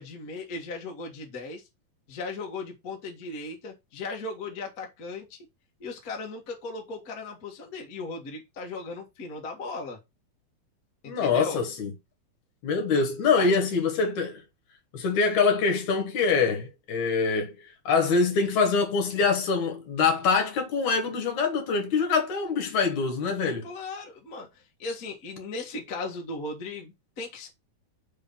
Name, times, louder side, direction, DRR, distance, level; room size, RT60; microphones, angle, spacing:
voice 1, 0.0-1.6 2.1-5.4 5.8-10.0 11.0-11.6 13.4-13.5 23.6-27.5, left 3 dB, 45° left, 1.1 m, -37 dB
voice 2, 11.1-11.9 12.6-14.4 14.9-17.6 17.9-23.7, left 5 dB, 65° left, 2.4 m, -24 dB
5.4 x 3.9 x 5.3 m
omnidirectional pair, 4.0 m